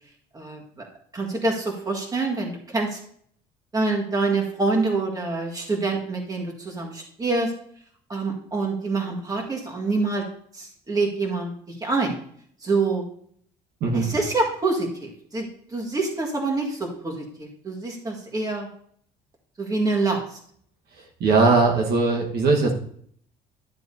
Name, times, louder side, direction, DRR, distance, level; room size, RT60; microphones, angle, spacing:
voice 1, 0.3-0.9 1.1-3.0 3.7-7.5 8.1-10.3 10.5-12.2 12.6-13.0 13.9-18.7 19.6-20.4, right 3 dB, 20° right, 0 dB, 1.7 m, -26 dB
voice 2, 21.2-22.7, right 3 dB, 70° right, 1 dB, 1.4 m, -19 dB
12.0 x 7.6 x 2.7 m, 0.63 s
cardioid pair, 110°, 17 cm